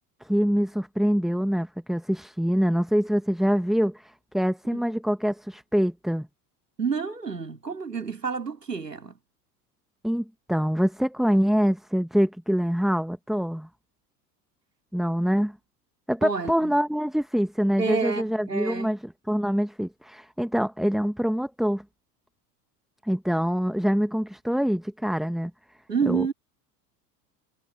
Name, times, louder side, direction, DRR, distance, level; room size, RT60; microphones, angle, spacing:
voice 1, 0.2-6.3 10.0-13.7 14.9-15.6 16.1-21.8 23.0-25.5 26.1-26.3, equal, ahead, 1.8 m, -25 dB
voice 2, 6.8-9.2 16.2-16.8 17.8-18.9 25.9-26.3, right 5 dB, 85° right, 3.3 m, -29 dB
figure-of-eight pair, 75°, 47 cm